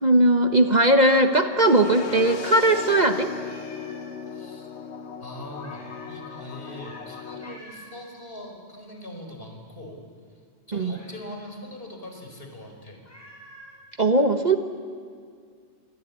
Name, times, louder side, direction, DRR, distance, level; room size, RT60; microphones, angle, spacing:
voice 1, 0.0-3.3 10.7-10.9 14.0-14.6, right 1 dB, 40° right, 6 dB, 1.3 m, -19 dB
Meow, 1.0-2.5 2.8-2.9 3.3-4.1 5.6-6.2 6.6-7.1 7.4-8.0 10.9-11.4 13.0-13.8, equal, 15° left, 7.8 m, -49 dB
sound 1, 1.6-7.6, left 6 dB, 70° left, 1.3 m, -36 dB
voice 2, 4.3-4.7 5.2-10.0 10.7-13.0, left 1 dB, 55° left, 3 dB, 4.9 m, -41 dB
28.0 x 22.5 x 8.4 m, 2.2 s
omnidirectional pair, 1.2 m